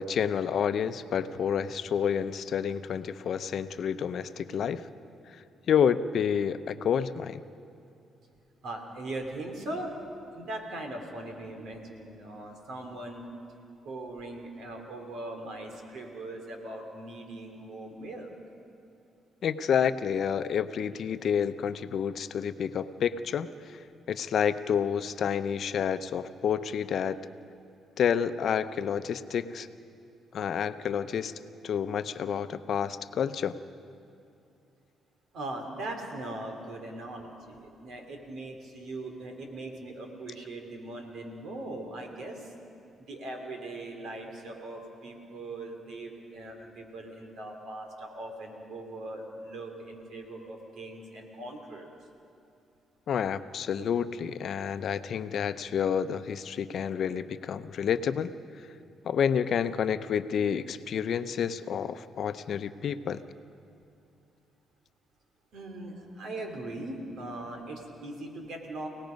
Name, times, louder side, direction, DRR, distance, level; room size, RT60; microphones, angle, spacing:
voice 1, 0.0-4.9 5.7-7.4 19.4-23.8 24.1-27.2 28.0-29.7 30.3-31.3 31.6-33.6 53.1-58.3 59.0-63.2, left 8 dB, 60° left, 12 dB, 0.7 m, -29 dB
voice 2, 8.6-9.9 10.3-13.3 13.8-18.3 35.3-42.5 43.1-51.9 65.5-68.9, right 2 dB, 70° right, 3 dB, 3.3 m, -40 dB
29.5 x 18.0 x 5.3 m, 2.6 s
cardioid pair, 90°, 0 cm